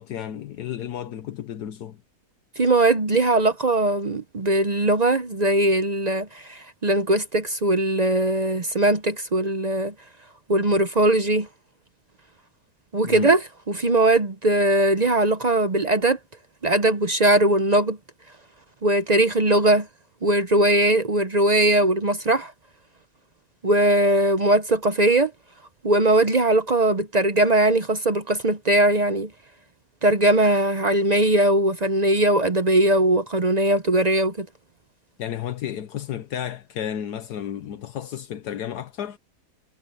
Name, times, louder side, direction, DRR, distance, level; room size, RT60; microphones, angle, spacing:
voice 1, 0.0-2.0 13.0-13.3 35.2-39.2, left 10 dB, 80° left, 1.4 m, -32 dB
voice 2, 2.6-9.9 10.5-11.5 12.9-16.2 16.6-18.0 18.8-19.9 20.2-22.5 23.6-25.3 25.8-29.3 30.0-34.5, right 1 dB, 40° right, 0.6 m, -20 dB
omnidirectional pair, 1.7 m